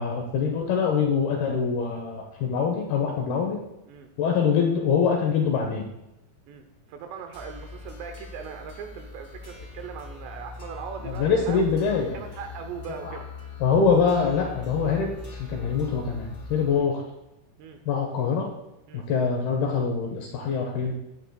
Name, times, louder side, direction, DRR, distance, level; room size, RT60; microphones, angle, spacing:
voice 1, 0.0-3.6 4.2-5.8 11.0-12.2 13.0-13.2 13.6-15.1 15.4-17.0 17.9-18.5 18.9-20.9, left 6 dB, 75° left, 1 dB, 2.3 m, -24 dB
voice 2, 6.5-11.6 12.1-13.3 17.6-17.8 18.9-19.0, right 7 dB, 80° right, 6 dB, 2.7 m, -39 dB
sound 1, 7.3-16.8, left 4 dB, 25° left, 2.7 m, -41 dB
16.5 x 9.8 x 2.3 m, 0.93 s
omnidirectional pair, 5.5 m